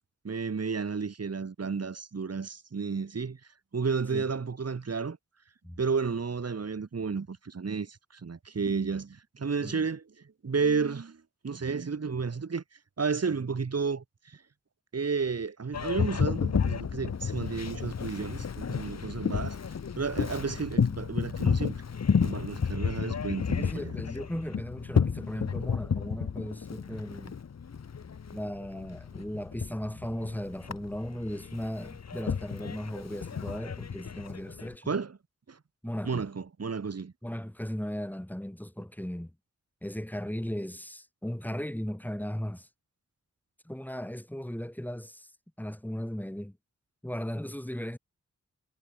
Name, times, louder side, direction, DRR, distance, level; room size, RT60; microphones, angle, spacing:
voice 1, 0.2-3.4 3.7-5.2 5.8-10.0 10.4-12.6 13.0-14.4 14.9-19.6 20.0-21.8 22.2-24.0 34.9-35.2 35.5-35.6 36.0-37.1, right 5 dB, 55° right, 3.9 m, -32 dB
Boat Water vehicle, 15.7-34.7, left 6 dB, 60° left, 1.7 m, -32 dB
voice 2, 23.6-27.4 28.3-34.9 35.8-36.2 37.2-39.3 39.8-42.7 43.7-45.3 45.6-46.6 47.0-48.0, equal, 5° left, 3.8 m, -37 dB
cardioid pair, 45°, 29 cm